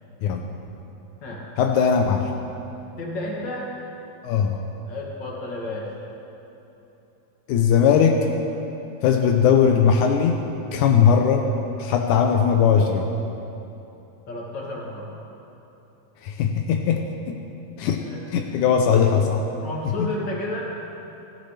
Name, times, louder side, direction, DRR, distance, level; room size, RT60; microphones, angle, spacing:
voice 1, 1.6-2.3 4.2-4.6 7.5-8.3 9.0-11.5 11.8-13.1 16.2-17.4 17.8-18.0 18.3-19.4 20.0-20.1, left 7 dB, 85° left, 4 dB, 2.2 m, -19 dB
voice 2, 3.0-3.7 4.9-5.9 14.3-15.1 18.0-18.2 19.6-20.6, left 1 dB, 40° left, -4 dB, 2.7 m, -31 dB
19.5 x 15.0 x 3.3 m, 3.0 s
omnidirectional pair, 3.5 m